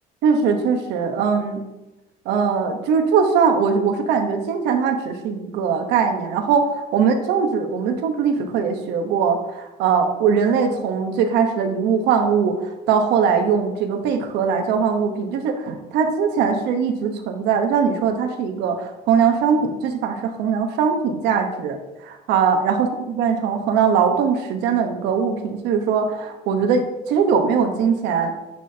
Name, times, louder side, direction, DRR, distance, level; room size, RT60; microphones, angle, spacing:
voice 1, 0.2-1.6 2.2-12.6 12.9-21.8 22.0-28.3, right 6 dB, 90° right, 5 dB, 1.0 m, -21 dB
8.5 x 6.1 x 2.8 m, 0.97 s
cardioid pair, 110°, 17 cm